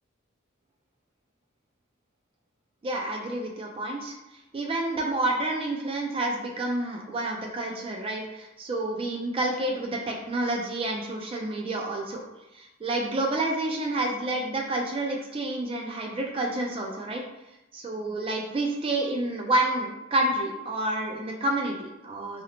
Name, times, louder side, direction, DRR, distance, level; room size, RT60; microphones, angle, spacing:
voice 1, 2.8-4.1 4.5-12.2 12.5-17.2 17.7-22.4, right 2 dB, 25° right, 1 dB, 0.3 m, -29 dB
2.7 x 2.0 x 2.8 m, 0.95 s
head